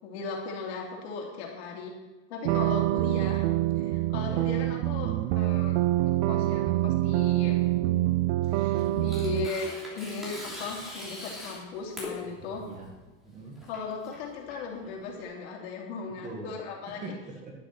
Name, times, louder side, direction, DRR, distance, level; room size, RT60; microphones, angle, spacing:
voice 1, 0.0-1.9 2.3-3.5 3.8-7.6 8.5-12.6 13.6-17.1, left 4 dB, 65° left, -1 dB, 3.3 m, -37 dB
sound 1, 2.4-9.5, right 16 dB, 45° right, 0.4 m, -26 dB
voice 2, 4.2-4.7 7.7-8.1 12.7-12.9 13.2-13.6 16.2-16.6 16.9-17.5, right 3 dB, 20° right, 1 dB, 1.8 m, -42 dB
Tearing, 8.4-15.2, left 1 dB, ahead, 3.2 m, -42 dB
11.5 x 8.5 x 5.9 m, 1.2 s
supercardioid pair, 165°, 34 cm